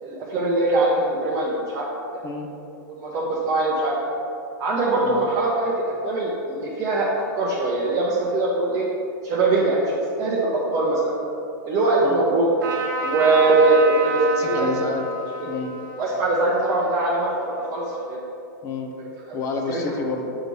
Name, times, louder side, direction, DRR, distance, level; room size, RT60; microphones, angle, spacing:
voice 1, 0.0-1.9 2.9-4.0 4.6-5.7 6.0-7.1 7.3-8.8 9.2-9.9 10.2-11.1 11.6-12.5 13.0-14.7 16.0-18.2 19.7-19.8, right 2 dB, 30° right, -5 dB, 0.8 m, -22 dB
Trumpet, 12.6-18.1, right 3 dB, 80° right, 1.2 m, -30 dB
voice 2, 14.3-15.1 15.4-15.8 18.6-18.9 19.3-20.4, left 4 dB, 30° left, 3 dB, 0.6 m, -29 dB
6.7 x 3.0 x 5.3 m, 2.7 s
hypercardioid pair, 140°, 11 cm